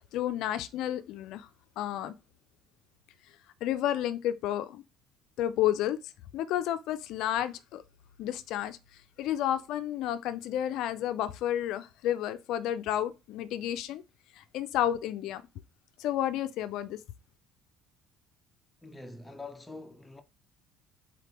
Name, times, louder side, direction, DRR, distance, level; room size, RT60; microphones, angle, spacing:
voice 1, 0.0-1.5 1.8-2.1 3.6-4.8 5.4-6.0 6.3-7.8 8.2-8.8 9.2-14.0 14.3-15.4 16.0-17.0, left 11 dB, 65° left, 0.3 m, -31 dB
voice 2, 18.8-20.2, left 3 dB, 10° left, 0.6 m, -45 dB
4.0 x 3.3 x 2.8 m
supercardioid pair, 100°, 0 cm